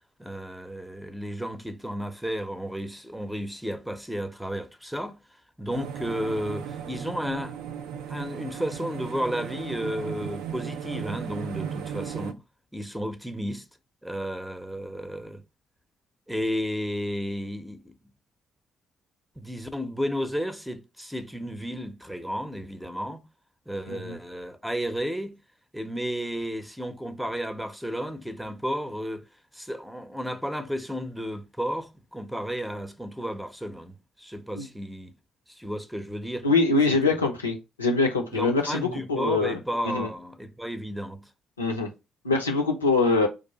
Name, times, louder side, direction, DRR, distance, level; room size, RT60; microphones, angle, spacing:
voice 1, 0.2-5.2 5.6-7.6 8.1-12.4 12.7-13.6 14.0-15.4 16.3-17.9 19.4-23.2 23.7-25.4 25.7-29.2 29.5-35.1 35.5-36.5 36.9-37.1 38.3-41.3, equal, ahead, 0.8 m, -33 dB
sound 1, 5.7-12.3, right 8 dB, 65° right, 0.4 m, -36 dB
voice 2, 36.4-39.6 39.8-40.1 41.6-41.9 42.2-43.3, left 3 dB, 85° left, 0.7 m, -24 dB
5.0 x 2.6 x 4.1 m
figure-of-eight pair, 45°, 0 cm